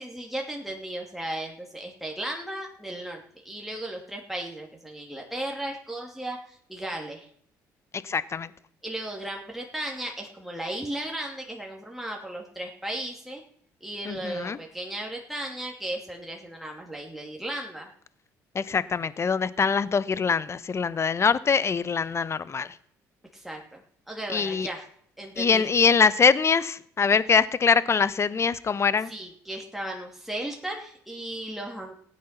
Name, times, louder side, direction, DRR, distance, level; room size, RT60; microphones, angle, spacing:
voice 1, 0.0-7.3 8.8-13.4 13.8-17.9 23.3-24.9 25.2-25.7 29.0-31.9, right 1 dB, ahead, 2.6 m, -35 dB
voice 2, 8.0-8.5 14.1-14.6 18.5-22.7 24.3-24.7 25.4-29.1, left 5 dB, 35° left, 0.9 m, -23 dB
16.0 x 9.6 x 5.8 m
supercardioid pair, 65°, 8 cm